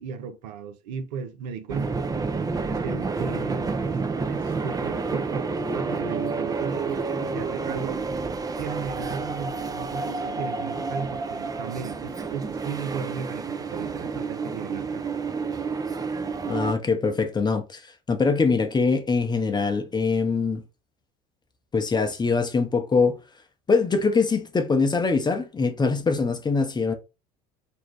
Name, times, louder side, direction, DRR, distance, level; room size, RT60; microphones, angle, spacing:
voice 1, 0.0-2.0 2.7-4.0 4.3-8.0 8.6-15.0, right 6 dB, 75° right, 0.5 m, -35 dB
sound 1, 1.7-16.7, right 4 dB, 15° right, 0.4 m, -29 dB
voice 2, 16.5-20.6 21.7-23.2 23.7-26.9, left 4 dB, 20° left, 0.7 m, -23 dB
2.6 x 2.2 x 3.2 m
hypercardioid pair, 70°, 21 cm